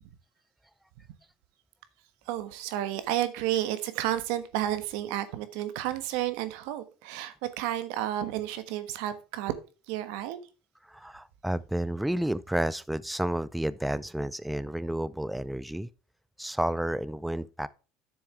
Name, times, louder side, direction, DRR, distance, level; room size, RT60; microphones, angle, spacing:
voice 1, 2.3-9.5 9.9-10.4, right 13 dB, 75° right, 1.3 m, -31 dB
voice 2, 10.8-15.9 16.4-17.7, right 1 dB, 5° right, 0.4 m, -31 dB
9.8 x 7.0 x 3.3 m
supercardioid pair, 115°, 0 cm